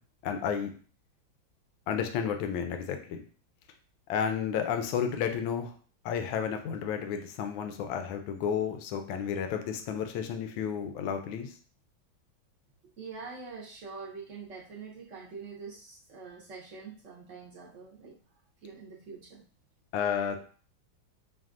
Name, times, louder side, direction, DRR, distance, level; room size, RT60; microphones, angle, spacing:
voice 1, 0.2-0.7 1.9-3.2 4.1-5.7 6.0-11.5 19.9-20.4, left 7 dB, 80° left, 6 dB, 1.3 m, -32 dB
voice 2, 13.0-18.2 18.6-19.5, right 5 dB, 70° right, -4 dB, 0.7 m, -45 dB
5.9 x 2.3 x 2.5 m, 0.41 s
omnidirectional pair, 2.2 m